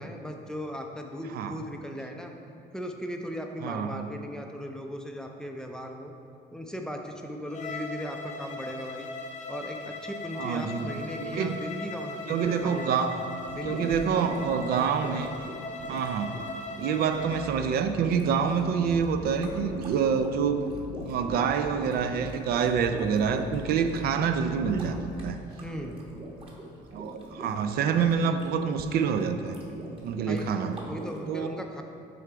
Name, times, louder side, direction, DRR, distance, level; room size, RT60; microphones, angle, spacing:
voice 1, 0.0-2.3 2.7-6.1 6.5-9.1 9.5-13.0 13.5-14.4 14.7-14.9 25.6-26.0 30.3-30.5 30.9-31.8, equal, 5° left, 3 dB, 0.5 m, -38 dB
voice 2, 3.6-4.1 10.4-10.9 11.2-11.6 12.3-13.2 13.6-15.3 15.9-16.3 16.8-20.7 21.0-25.0 25.2-25.4 26.9-29.6 30.0-30.8 31.3-31.5, right 6 dB, 65° right, 8 dB, 0.4 m, -27 dB
Bowed string instrument, 7.5-17.5, left 3 dB, 45° left, 0.7 m, -39 dB
sound 1, 13.4-31.2, right 1 dB, 30° right, 1.2 m, -43 dB
sound 2, 17.1-25.1, left 1 dB, 80° left, 1.5 m, -44 dB
6.6 x 3.8 x 4.6 m, 2.5 s
cardioid pair, 110°, 17 cm